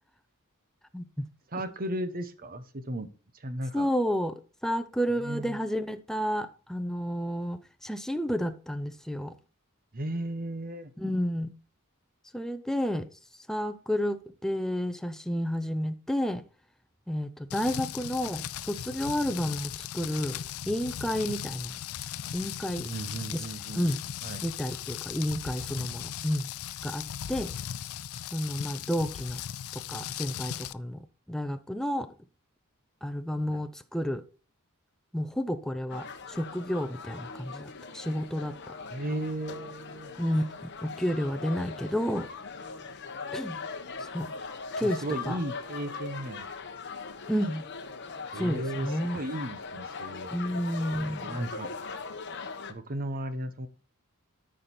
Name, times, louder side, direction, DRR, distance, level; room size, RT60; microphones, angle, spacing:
voice 1, 0.9-1.2 3.7-9.3 11.0-11.5 12.3-13.1 13.5-16.4 17.1-20.4 20.7-21.8 22.3-22.9 23.3-23.4 23.7-24.0 24.4-26.5 26.8-27.0 27.3-27.5 28.3-29.4 29.7-31.0 31.3-32.1 33.0-34.2 35.1-38.5 40.2-42.3 43.3-43.6 44.0-44.3 44.8-45.4 47.3-47.6 48.4-49.2 50.3-51.4, equal, ahead, 0.7 m, -31 dB
voice 2, 1.5-3.1 3.4-3.9 5.2-5.6 9.9-10.9 22.8-23.9 24.2-24.4 33.5-33.6 38.9-40.1 44.8-46.5 48.3-50.6 51.2-51.7 52.7-53.7, right 1 dB, 40° right, 1.0 m, -35 dB
Rain, 17.5-30.7, left 10 dB, 75° left, 0.4 m, -38 dB
sound 1, 35.9-52.7, left 4 dB, 55° left, 1.0 m, -40 dB
13.0 x 5.2 x 4.3 m
head